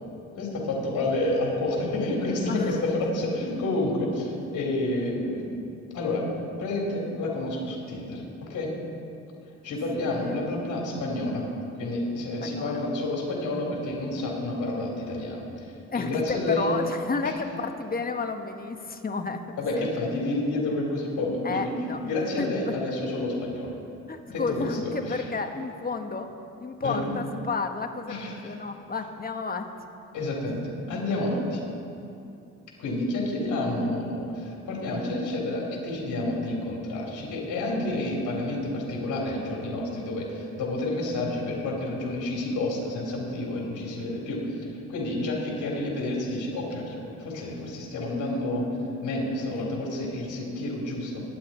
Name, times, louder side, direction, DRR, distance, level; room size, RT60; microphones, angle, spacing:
voice 1, 0.3-5.7 5.9-6.2 6.6-8.2 8.5-8.7 9.6-11.4 11.7-15.4 15.9-16.7 17.2-17.3 19.6-21.7 22.0-23.7 24.3-25.2 26.8-27.1 28.1-28.3 30.1-31.6 32.8-44.4 44.9-48.7 49.0-51.2, left 2 dB, 75° left, -2 dB, 3.8 m, -29 dB
voice 2, 2.5-2.8 10.1-10.4 12.4-12.9 15.9-19.4 19.8-19.9 21.4-22.7 24.1-26.3 26.6-29.7 49.5-49.7, left 4 dB, 30° left, 5 dB, 1.3 m, -32 dB
23.5 x 10.0 x 4.4 m, 2.7 s
cardioid pair, 90°, 30 cm